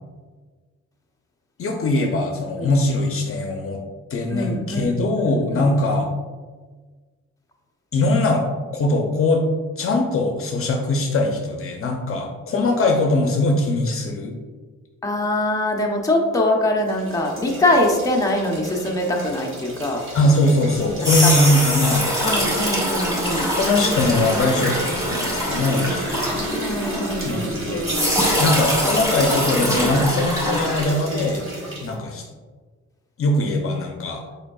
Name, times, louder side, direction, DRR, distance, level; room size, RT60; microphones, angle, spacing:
voice 1, 1.6-3.8 4.1-6.1 7.9-8.4 8.7-9.4 9.8-14.4 20.1-22.5 23.5-26.4 27.2-27.9 28.4-31.4 31.8-32.3 33.2-34.2, left 2 dB, 45° left, 2 dB, 0.6 m, -21 dB
voice 2, 4.3-5.7 15.0-20.0 21.2-21.5 22.2-23.5 26.6-28.0, left 1 dB, 10° left, -1 dB, 0.7 m, -23 dB
sound 1, 16.8-32.0, right 1 dB, 45° right, 1.5 m, -32 dB
sound 2, 20.8-27.5 27.8-30.9, equal, 10° right, 1.5 m, -23 dB
5.0 x 4.5 x 2.3 m, 1.4 s
cardioid pair, 90°, 30 cm